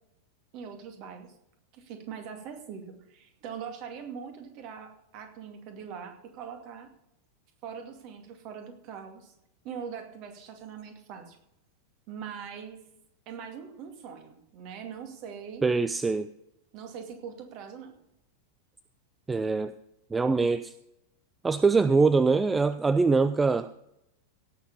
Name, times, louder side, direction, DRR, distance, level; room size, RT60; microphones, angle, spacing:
voice 1, 0.5-1.4 1.7-6.9 7.6-9.3 9.6-11.4 12.1-12.8 13.3-15.7 16.7-18.0, right 7 dB, 40° right, 5 dB, 2.3 m, -42 dB
voice 2, 15.6-16.3 19.3-19.7 20.1-20.7 21.4-23.7, right 4 dB, 10° right, 14 dB, 0.4 m, -23 dB
17.0 x 7.0 x 5.4 m, 0.82 s
figure-of-eight pair, 90°, 0 cm